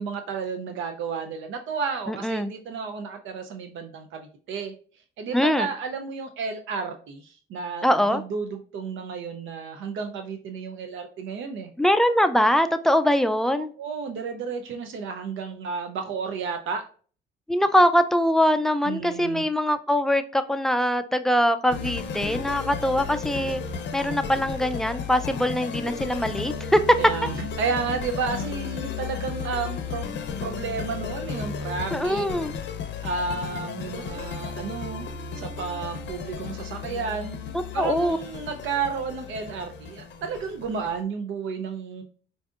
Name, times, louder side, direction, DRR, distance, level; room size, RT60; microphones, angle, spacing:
voice 1, 0.0-4.7 5.2-11.7 13.8-16.8 18.8-19.4 27.0-32.3 33.0-35.1 35.3-37.4 37.7-42.0, right 5 dB, 75° right, 0.5 m, -32 dB
voice 2, 2.1-2.5 5.3-5.7 7.8-8.2 11.8-13.7 17.5-23.7 23.9-26.8 31.9-32.5 37.5-38.2, equal, ahead, 0.3 m, -22 dB
sound 1, 21.7-41.0, left 6 dB, 65° left, 0.6 m, -34 dB
4.7 x 2.6 x 2.3 m
cardioid pair, 90°, 20 cm